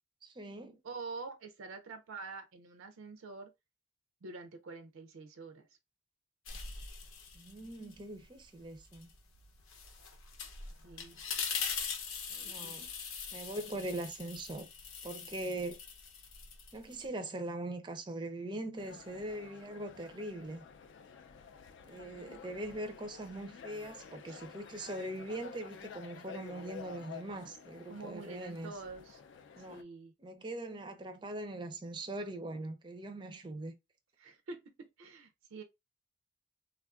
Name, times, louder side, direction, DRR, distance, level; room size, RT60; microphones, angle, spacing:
voice 1, 0.2-0.8 7.3-9.1 12.4-12.9 13.3-14.7 15.0-15.8 16.7-20.6 21.8-28.7 29.6-29.9 30.2-33.7, right 1 dB, 20° right, 0.4 m, -41 dB
voice 2, 0.8-3.5 4.2-5.7 10.8-11.2 12.3-12.9 24.3-24.4 27.9-29.2 29.6-30.1 34.2-35.6, right 3 dB, 80° right, 0.4 m, -47 dB
sound 1, 6.5-8.0 8.4-17.1, left 6 dB, 80° left, 0.7 m, -42 dB
sound 2, 18.8-29.8, left 6 dB, 60° left, 0.3 m, -51 dB
3.4 x 2.4 x 2.3 m
head